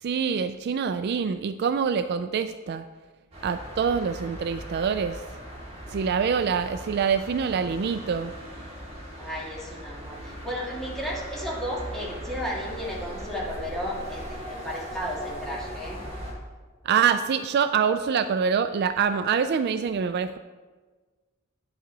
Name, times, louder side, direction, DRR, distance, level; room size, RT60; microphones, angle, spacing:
voice 1, 0.0-2.8 3.4-5.2 5.9-8.3 16.8-20.4, right 6 dB, 50° right, 10 dB, 0.3 m, -25 dB
sound 1, 3.3-16.3, equal, 30° right, 2.9 m, -39 dB
voice 2, 9.2-16.0, equal, ahead, -5 dB, 2.1 m, -34 dB
9.9 x 7.8 x 4.0 m, 1.3 s
head